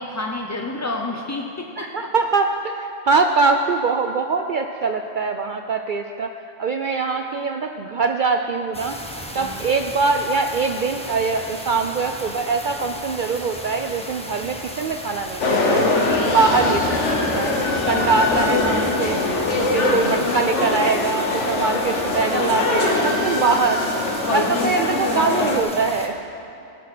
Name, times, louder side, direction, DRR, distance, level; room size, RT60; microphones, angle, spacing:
voice 1, 0.0-1.9 9.3-9.5 24.3-24.5, left 2 dB, 25° left, 1 dB, 0.4 m, -29 dB
voice 2, 1.8-6.3 6.6-9.0 9.3-17.5 17.8-19.2 19.6-23.9 24.2-26.2, right 4 dB, 60° right, 5 dB, 0.5 m, -23 dB
sound 1, 8.7-26.1, equal, 5° left, 0.9 m, -35 dB
sound 2, 15.4-25.6, left 2 dB, 75° left, 1.5 m, -22 dB
17.5 x 7.1 x 6.0 m, 2.7 s
omnidirectional pair, 1.2 m